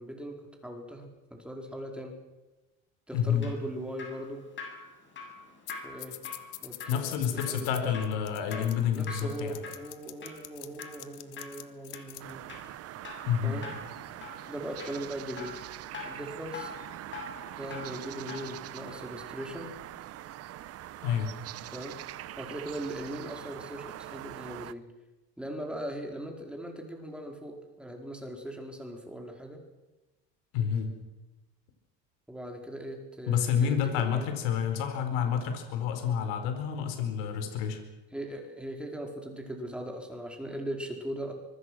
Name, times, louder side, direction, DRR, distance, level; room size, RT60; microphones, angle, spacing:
voice 1, 0.0-2.1 3.1-4.4 5.8-6.2 6.6-8.0 8.9-12.5 13.4-13.7 14.5-15.6 16.0-16.7 17.5-19.8 21.7-22.0 22.4-24.8 25.4-29.6 32.3-34.3 38.1-41.3, right 1 dB, 5° right, 2 dB, 4.5 m, -39 dB
voice 2, 3.1-3.5 6.9-9.6 13.2-13.6 21.0-21.3 30.5-30.9 33.3-37.8, left 8 dB, 85° left, 7 dB, 4.7 m, -29 dB
Drip, 3.1-18.6 18.9-19.0, left 4 dB, 35° left, 7.5 m, -45 dB
sound 1, 5.7-5.8 6.0-12.3, left 18 dB, 65° left, 1.9 m, -44 dB
sound 2, 12.2-24.7, right 13 dB, 45° right, 0.9 m, -43 dB
25.0 x 23.5 x 6.3 m, 1.1 s
cardioid pair, 130°, 33 cm